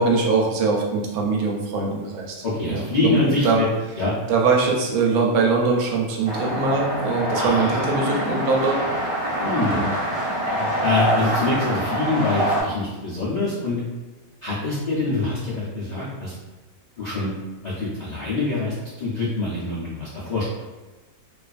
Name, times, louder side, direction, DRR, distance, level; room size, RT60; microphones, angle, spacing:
voice 1, 0.0-3.6 4.3-8.8 9.6-9.9 10.6-10.7, right 4 dB, 85° right, -1 dB, 1.1 m, -22 dB
voice 2, 2.4-3.7 4.0-4.1 7.3-7.9 9.4-9.8 10.8-13.8 14.4-16.3 17.0-17.3 17.6-20.4, left 2 dB, 75° left, -9 dB, 0.4 m, -25 dB
sound 1, 6.3-12.6, equal, 55° right, 0.9 m, -25 dB
2.5 x 2.4 x 2.3 m, 1.2 s
omnidirectional pair, 1.6 m